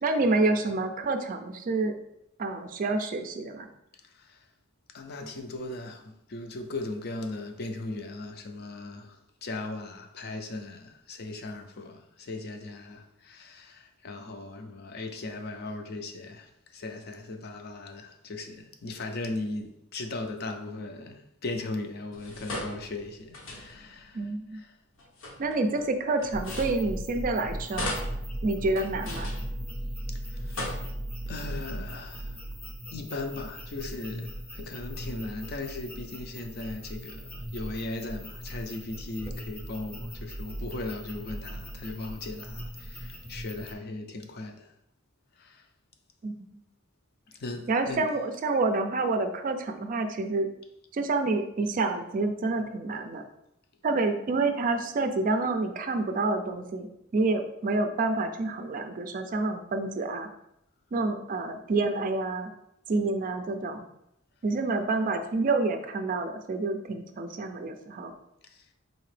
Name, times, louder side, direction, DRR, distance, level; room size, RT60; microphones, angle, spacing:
voice 1, 0.0-1.9 2.4-3.7 24.1-24.6 25.4-27.9 28.4-29.3 46.2-46.6 47.7-50.5 50.9-53.2 53.8-56.9 57.1-60.3 60.9-62.5 62.9-63.9 64.4-68.1, right 3 dB, 45° right, 0.4 m, -28 dB
voice 2, 4.0-4.5 4.9-24.8 30.1-30.8 31.3-32.5 32.9-44.7 45.4-45.7 47.3-48.1 68.4-68.7, left 2 dB, 55° left, 0.5 m, -38 dB
sound 1, 22.1-24.0 25.0-27.3 27.7-30.0 30.4-31.4, left 1 dB, 85° left, 0.9 m, -39 dB
sound 2, 26.3-43.7, equal, 10° left, 0.6 m, -38 dB
4.1 x 2.8 x 3.2 m
head